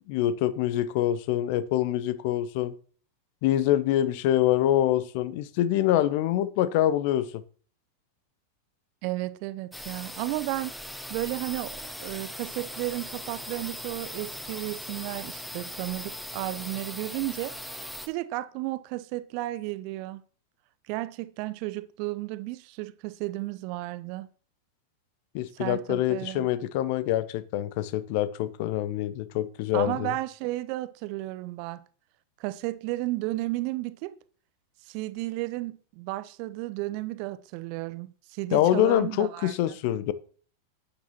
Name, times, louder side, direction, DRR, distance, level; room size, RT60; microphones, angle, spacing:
voice 1, 0.1-2.7 3.4-7.4 25.3-30.1 38.5-40.1, left 12 dB, 45° left, 0.7 m, -25 dB
voice 2, 9.0-10.7 11.1-17.5 18.1-20.2 20.9-24.3 25.5-26.7 29.7-31.8 32.4-34.1 34.9-39.8, right 18 dB, 45° right, 0.6 m, -33 dB
sound 1, 9.7-18.1, equal, ahead, 0.9 m, -39 dB
11.5 x 9.8 x 2.9 m
figure-of-eight pair, 90°, 0 cm